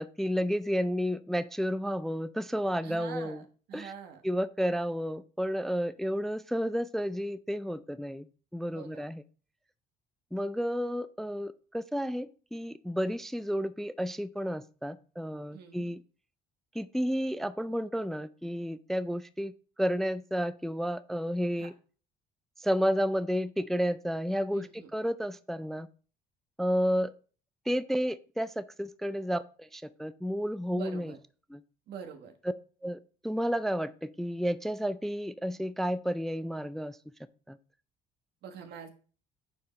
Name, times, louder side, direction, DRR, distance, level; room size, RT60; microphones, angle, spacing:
voice 1, 0.0-3.4 3.7-3.9 4.2-8.3 8.5-9.2 10.3-16.0 16.7-19.5 19.8-21.7 22.6-25.9 26.6-27.1 27.7-31.1 31.5-31.6 32.8-37.0 37.5-37.6, equal, ahead, 14 dB, 0.3 m, -31 dB
voice 2, 2.8-3.4 3.7-4.2 8.7-9.0 15.5-15.9 21.6-21.7 24.5-24.9 30.7-31.2 31.9-32.3 38.4-38.9, right 7 dB, 75° right, 5 dB, 1.3 m, -44 dB
9.0 x 4.7 x 3.2 m, 0.40 s
cardioid pair, 110°, 17 cm